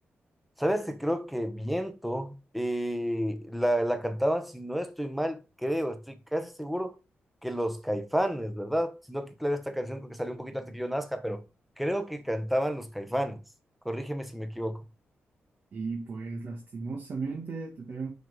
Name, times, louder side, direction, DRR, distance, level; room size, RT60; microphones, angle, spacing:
voice 1, 0.6-6.9 7.4-11.4 11.8-13.4 13.8-14.8, equal, ahead, 1.1 m, -30 dB
voice 2, 15.7-18.1, right 4 dB, 55° right, 1.6 m, -35 dB
5.8 x 5.4 x 4.7 m
wide cardioid pair, 125°, 4 cm